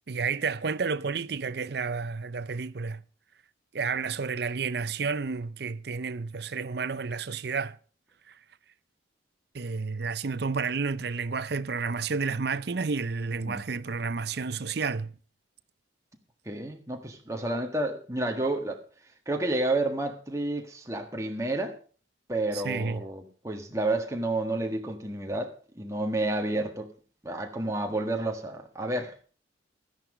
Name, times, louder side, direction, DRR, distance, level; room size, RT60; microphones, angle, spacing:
voice 1, 0.1-3.0 3.7-7.7 9.5-15.1 22.5-23.0, right 5 dB, 55° right, 0.6 m, -31 dB
voice 2, 16.4-18.8 19.2-21.8 22.3-26.9 27.2-29.2, right 2 dB, 15° right, 1.7 m, -30 dB
13.0 x 10.5 x 5.0 m
head